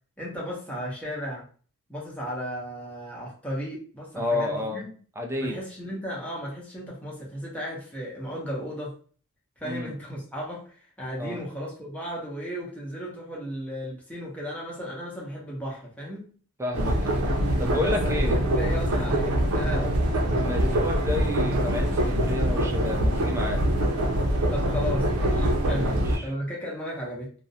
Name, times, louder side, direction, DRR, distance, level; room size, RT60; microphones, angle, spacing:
voice 1, 0.2-1.5 1.9-4.9 5.4-8.9 9.6-16.3 17.8-20.1 24.5-27.3, equal, 5° left, -4 dB, 0.8 m, -35 dB
voice 2, 4.2-4.8 5.2-5.6 9.6-9.9 11.2-11.4 16.6-17.2 17.6-18.4 20.4-23.7 25.7-26.2, left 2 dB, 15° right, 2 dB, 0.4 m, -31 dB
sound 1, 16.7-26.2, right 1 dB, 75° right, 0.5 m, -24 dB
2.5 x 2.0 x 2.7 m, 0.42 s
head